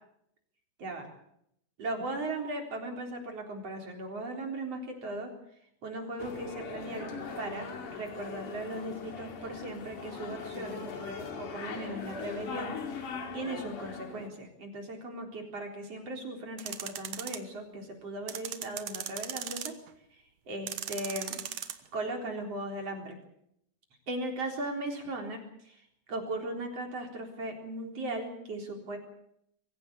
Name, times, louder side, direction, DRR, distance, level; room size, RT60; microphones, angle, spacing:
voice 1, 1.8-5.3 5.8-19.8 20.5-21.5 21.9-23.2 24.1-25.8 26.1-29.0, right 2 dB, 40° right, 2 dB, 4.8 m, -38 dB
sound 1, 6.2-14.3, left 5 dB, 60° left, 3.8 m, -40 dB
sound 2, 16.6-17.4 18.3-19.9 20.7-21.7, right 10 dB, 60° right, 2.1 m, -37 dB
24.5 x 15.5 x 8.4 m, 0.74 s
omnidirectional pair, 4.2 m